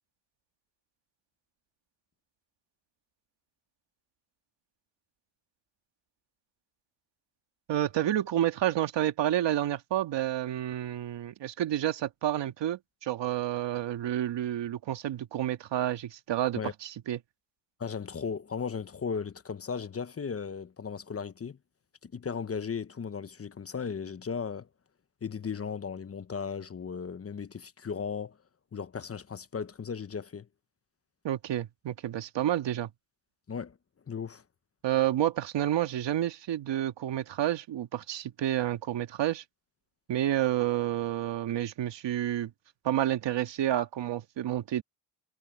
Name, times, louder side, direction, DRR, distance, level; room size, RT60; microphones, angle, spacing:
voice 1, 7.7-17.2 31.2-32.9 34.8-39.4 40.1-42.5 42.8-44.8, right 12 dB, 70° right, 2.1 m, -29 dB
voice 2, 17.8-21.6 22.0-24.7 25.2-28.4 28.7-30.5 33.5-33.8 34.1-34.4, left 6 dB, 30° left, 1.1 m, -36 dB
cardioid pair, 80°, 45 cm